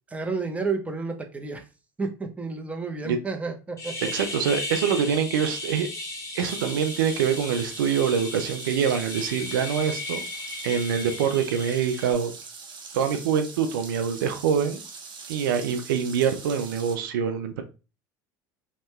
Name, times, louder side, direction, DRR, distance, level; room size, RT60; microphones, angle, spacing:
voice 1, 0.1-1.6 2.0-4.1, right 4 dB, 10° right, 3 dB, 0.6 m, -31 dB
sound 1, 3.8-12.1, left 2 dB, 30° left, 1.4 m, -36 dB
voice 2, 4.1-5.9 6.3-10.2 10.6-12.3 12.9-14.8 15.3-17.6, right 7 dB, 85° right, 7 dB, 0.4 m, -25 dB
sound 2, 6.4-16.9, right 5 dB, 45° right, 0.8 m, -43 dB
2.8 x 2.2 x 3.1 m, 0.31 s
hypercardioid pair, 80°, 11 cm